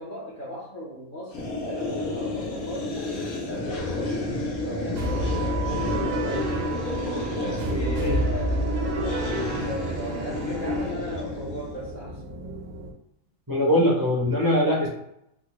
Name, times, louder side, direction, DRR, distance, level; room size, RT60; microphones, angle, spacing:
voice 1, 0.0-6.7 7.3-12.2, equal, 50° left, -6 dB, 0.7 m, -37 dB
sound 1, 1.3-11.8, left 2 dB, 75° left, 1.2 m, -31 dB
sound 2, 5.0-10.9, right 1 dB, 65° right, 1.0 m, -29 dB
sound 3, 6.8-12.9, right 3 dB, 85° right, 1.1 m, -38 dB
voice 2, 13.5-14.9, left 1 dB, 25° right, -4 dB, 0.4 m, -22 dB
3.4 x 2.0 x 2.9 m, 0.77 s
omnidirectional pair, 1.5 m